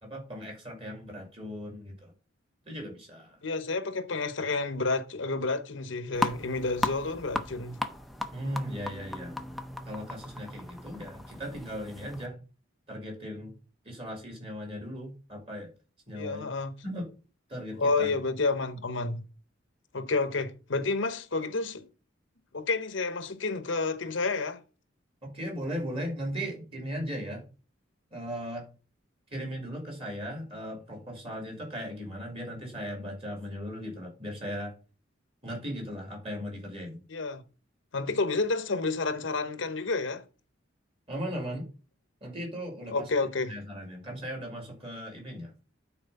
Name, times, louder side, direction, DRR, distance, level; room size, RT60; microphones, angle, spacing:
voice 1, 0.0-2.1 2.6-3.4 8.3-9.4 9.8-12.4 12.9-13.5 13.8-15.7 16.1-16.5 16.8-17.1 17.5-18.2 25.2-27.5 28.1-28.7 29.3-34.7 35.4-37.0 41.1-41.7 42.2-43.1 43.5-45.5, equal, 30° right, 2.5 m, -37 dB
voice 2, 3.4-7.8 16.1-16.7 17.8-19.2 19.9-21.9 22.5-24.6 37.1-37.4 37.9-40.2 42.9-43.5, left 3 dB, 75° left, 0.9 m, -30 dB
sound 1, 6.1-12.3, left 1 dB, ahead, 0.5 m, -36 dB
9.0 x 4.3 x 5.3 m
head